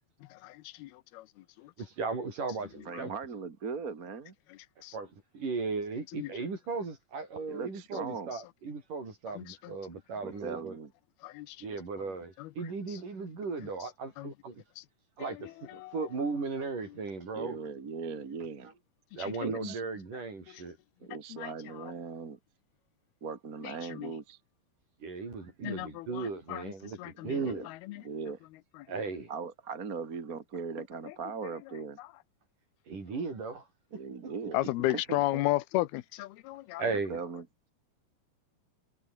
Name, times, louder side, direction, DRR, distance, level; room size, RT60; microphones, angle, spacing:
voice 1, 0.3-1.2 4.8-4.9 6.1-6.3 9.4-9.5 11.2-11.6 12.4-12.5 14.2-14.3 15.8-15.9 21.4-21.5 24.0-24.1 25.6-26.6 27.0-27.3 27.9-28.0 34.5-36.8, left 17 dB, 90° left, 2.8 m, -33 dB
voice 2, 1.8-3.2 4.9-10.8 11.6-14.6 15.2-17.6 19.2-20.8 25.0-27.7 28.9-29.3 32.9-33.7 36.8-37.2, right 4 dB, 55° right, 7.9 m, -36 dB
voice 3, 2.8-4.3 7.5-8.3 10.2-10.9 17.3-18.7 19.4-19.8 21.0-22.4 23.2-24.4 27.1-27.7 28.0-28.4 29.3-32.0 33.9-34.6 34.9-35.4 36.9-37.4, right 5 dB, 35° right, 1.5 m, -39 dB
omnidirectional pair, 4.4 m